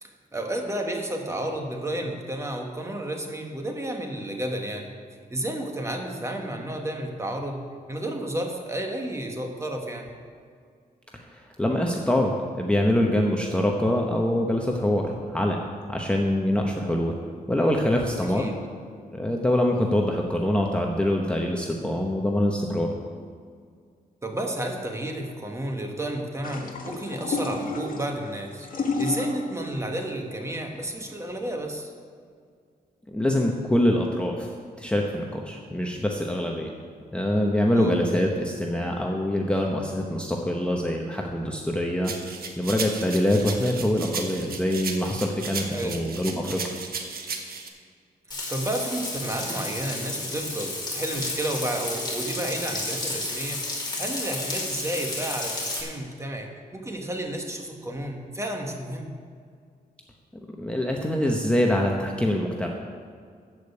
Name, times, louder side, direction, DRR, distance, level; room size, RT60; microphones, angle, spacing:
voice 1, 0.0-4.9 5.3-10.1 18.3-18.5 24.2-31.9 37.7-37.9 45.7-46.0 48.3-59.2, right 1 dB, 20° right, 2 dB, 1.4 m, -31 dB
voice 2, 11.3-15.6 15.9-17.1 17.5-18.5 19.1-22.9 33.1-36.7 37.1-42.1 42.6-46.6 60.5-62.7, left 1 dB, 5° left, 0 dB, 0.9 m, -24 dB
sound 1, 26.4-31.7, left 3 dB, 65° left, 1.5 m, -32 dB
sound 2, 42.0-47.7, right 5 dB, 75° right, 1.3 m, -35 dB
Frying (food), 48.3-55.8, left 2 dB, 30° left, 2.9 m, -32 dB
13.5 x 5.2 x 8.2 m, 2.1 s
wide cardioid pair, 135°, 16 cm